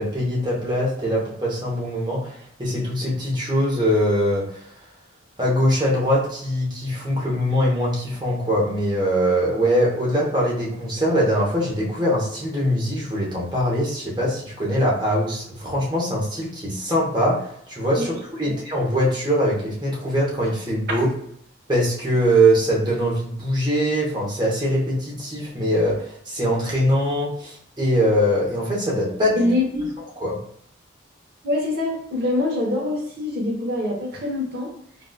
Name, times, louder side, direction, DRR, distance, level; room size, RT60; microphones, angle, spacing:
voice 1, 0.0-4.5 5.4-21.1 21.7-29.5 30.2-30.4, equal, 20° right, -5 dB, 0.8 m, -22 dB
voice 2, 29.3-29.9 31.4-34.7, left 2 dB, 50° right, -2 dB, 0.9 m, -24 dB
3.8 x 2.3 x 2.2 m, 0.67 s
head